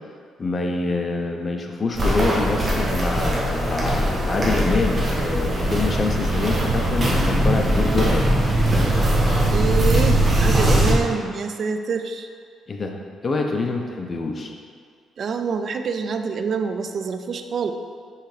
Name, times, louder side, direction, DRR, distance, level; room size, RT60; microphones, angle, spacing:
voice 1, 0.4-8.3 12.7-13.0 13.2-14.5, left 3 dB, 35° left, 2 dB, 0.7 m, -25 dB
Walk footsteps, 1.9-10.9, right 1 dB, 30° right, 1.4 m, -20 dB
voice 2, 9.5-12.3 15.2-17.7, right 5 dB, 55° right, 7 dB, 0.4 m, -26 dB
5.7 x 3.8 x 4.9 m, 2.1 s
cardioid pair, 90°, 0 cm